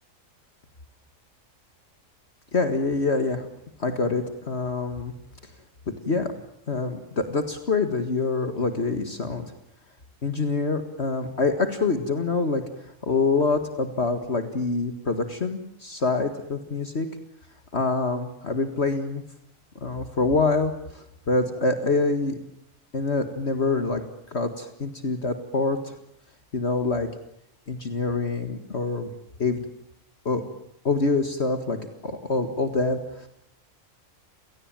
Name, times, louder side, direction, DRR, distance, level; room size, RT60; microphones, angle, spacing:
voice 1, 2.5-3.5 3.8-5.1 6.0-6.3 6.7-9.5 10.2-17.1 17.7-19.2 19.8-22.3 22.9-24.0 24.3-26.0 26.5-27.1 27.7-29.1 29.4-29.6 30.3-30.4 30.8-31.8 32.0-33.3, left 3 dB, 50° left, 7 dB, 2.1 m, -25 dB
29.5 x 18.0 x 9.0 m, 0.76 s
omnidirectional pair, 1.4 m